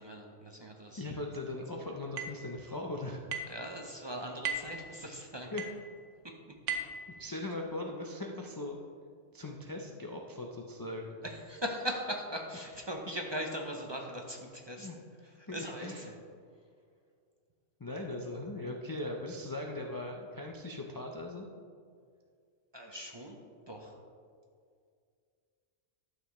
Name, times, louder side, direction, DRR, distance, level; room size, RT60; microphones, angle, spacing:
voice 1, 0.0-1.1 3.5-5.5 6.2-6.3 7.2-7.4 11.2-14.9 15.2-16.2 22.7-23.4 23.7-24.0, equal, 25° right, 1 dB, 0.6 m, -40 dB
voice 2, 1.0-3.2 5.5-5.6 7.2-8.8 9.3-11.2 14.8-15.0 15.5-16.0 17.8-21.5, left 2 dB, 30° left, 0 dB, 0.4 m, -39 dB
sound 1, 2.2-2.4 3.3-3.6 4.4-4.8 5.6-5.9 6.7-7.0, right 4 dB, 80° right, 1.2 m, -36 dB
11.5 x 6.8 x 3.1 m, 2.2 s
omnidirectional pair, 1.3 m